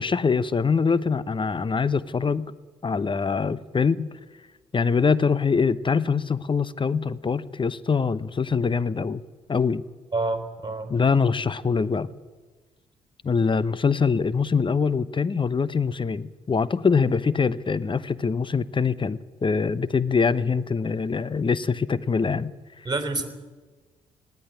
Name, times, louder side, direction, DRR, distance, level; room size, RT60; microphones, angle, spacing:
voice 1, 0.0-2.5 2.8-4.1 4.7-9.2 9.5-9.8 10.9-12.1 13.2-22.5, left 5 dB, 30° left, 18 dB, 0.9 m, -24 dB
voice 2, 10.1-10.9 22.9-23.3, right 3 dB, 25° right, 7 dB, 3.7 m, -27 dB
19.0 x 14.5 x 9.9 m, 1.3 s
hypercardioid pair, 45°, 16 cm